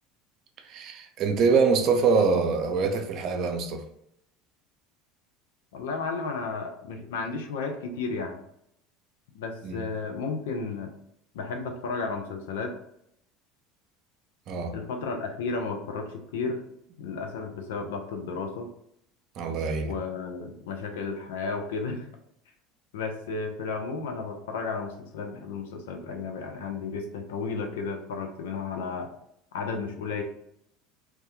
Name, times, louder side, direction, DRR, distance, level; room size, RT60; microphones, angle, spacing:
voice 1, 0.6-3.8 9.6-9.8 14.5-14.8 19.4-20.0, right 4 dB, 55° right, 0.4 m, -24 dB
voice 2, 5.7-8.4 9.3-10.9 11.3-12.7 14.7-16.6 17.0-18.7 19.8-22.1 22.9-29.1 29.5-30.2, left 4 dB, 80° left, 0.4 m, -33 dB
2.2 x 2.1 x 2.7 m
hypercardioid pair, 85°, 0 cm